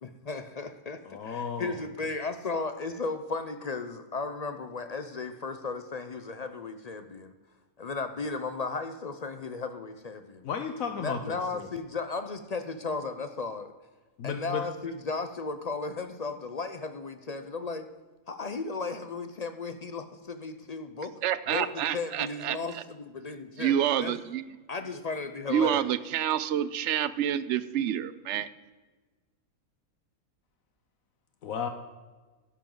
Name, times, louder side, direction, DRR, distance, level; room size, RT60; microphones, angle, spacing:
voice 1, 0.0-7.3 7.8-10.4 11.0-13.7 14.2-17.9 18.3-21.1 21.5-24.2 24.7-26.0, left 4 dB, 55° left, 9 dB, 0.4 m, -35 dB
voice 2, 1.0-1.8 10.4-11.7 14.2-14.6 31.4-31.7, left 6 dB, 70° left, 7 dB, 1.2 m, -34 dB
voice 3, 21.2-22.8 23.6-24.4 25.5-28.5, right 10 dB, 65° right, 15 dB, 0.8 m, -28 dB
12.0 x 10.5 x 3.8 m, 1.3 s
omnidirectional pair, 1.5 m